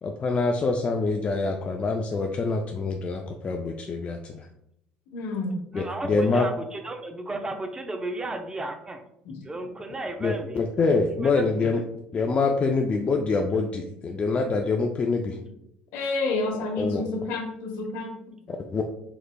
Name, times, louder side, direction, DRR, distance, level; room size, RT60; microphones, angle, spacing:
voice 1, 0.0-4.5 5.7-6.5 10.2-11.8 12.1-15.4 16.8-17.0 18.7-18.8, left 3 dB, 35° left, 3 dB, 0.3 m, -25 dB
voice 2, 5.1-5.6 9.2-9.3 15.9-18.1, left 3 dB, 75° left, 2 dB, 0.8 m, -29 dB
voice 3, 5.7-9.0 9.4-10.6 11.2-11.3, right 2 dB, 20° right, 5 dB, 0.5 m, -34 dB
4.0 x 3.0 x 2.2 m, 0.77 s
supercardioid pair, 85°, 4 cm